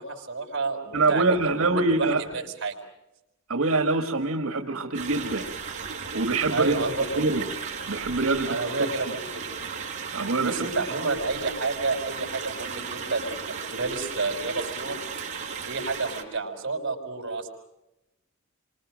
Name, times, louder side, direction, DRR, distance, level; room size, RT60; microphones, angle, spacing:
voice 1, 0.0-2.8 6.5-7.1 8.5-9.5 10.4-15.0 15.6-17.5, right 3 dB, 55° right, 3 dB, 5.6 m, -30 dB
voice 2, 0.9-2.2 3.5-5.4 6.1-6.8 7.2-7.4 7.9-8.9 10.1-10.6, right 3 dB, 80° right, 5 dB, 1.9 m, -24 dB
sound 1, 4.9-16.2, right 6 dB, 35° right, 4.6 m, -35 dB
28.5 x 25.5 x 6.4 m, 0.93 s
head